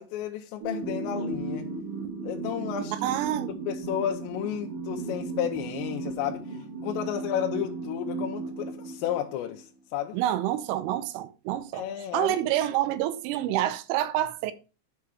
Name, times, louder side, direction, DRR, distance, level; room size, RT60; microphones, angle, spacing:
voice 1, 0.0-1.7 2.2-2.9 3.7-10.2 11.7-12.4, left 11 dB, 80° left, 2.7 m, -32 dB
sound 1, 0.6-9.6, right 3 dB, 70° right, 3.8 m, -35 dB
voice 2, 2.9-3.6 10.1-11.9 12.1-14.5, right 12 dB, 90° right, 3.3 m, -28 dB
10.5 x 4.9 x 4.6 m
omnidirectional pair, 5.6 m